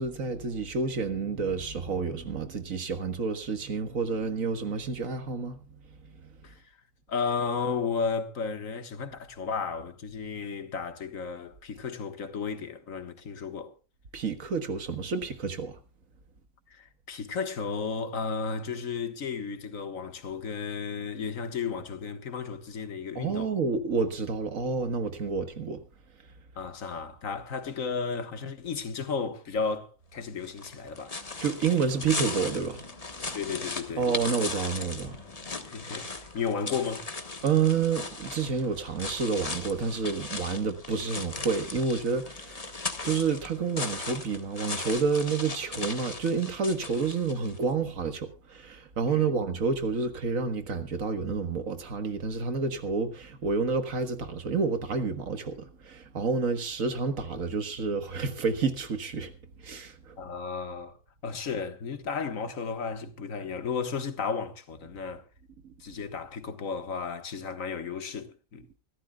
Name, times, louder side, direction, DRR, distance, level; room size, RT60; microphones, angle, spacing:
voice 1, 0.0-5.6 14.1-15.8 23.2-25.8 31.4-32.9 33.2-33.4 34.0-35.2 37.4-42.8 43.0-59.3 59.6-60.2 65.6-65.7, right 5 dB, 85° right, 1.9 m, -29 dB
voice 2, 7.1-13.7 16.7-23.5 26.6-31.1 33.3-34.1 35.7-37.1 49.1-49.3 60.2-60.9 61.2-65.2 65.8-68.7, left 5 dB, 85° left, 1.8 m, -33 dB
sound 1, 30.4-47.6, left 3 dB, 30° left, 1.3 m, -38 dB
25.5 x 13.0 x 2.3 m
omnidirectional pair, 1.4 m